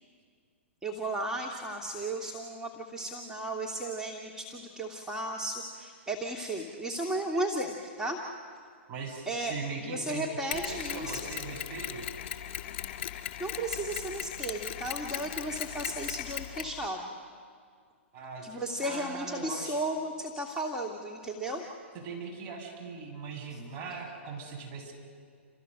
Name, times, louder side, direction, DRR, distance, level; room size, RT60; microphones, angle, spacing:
voice 1, 0.8-8.2 9.3-9.5 9.9-11.2 13.4-17.2 18.4-21.6 23.5-23.6, right 1 dB, 10° right, -1 dB, 2.0 m, -34 dB
voice 2, 8.9-12.0 18.1-19.8 22.0-24.9, right 4 dB, 35° right, 0 dB, 7.2 m, -40 dB
Mechanisms, 10.5-16.8, left 11 dB, 50° left, 2.6 m, -38 dB
29.5 x 27.5 x 6.6 m, 2.1 s
hypercardioid pair, 115°, 7 cm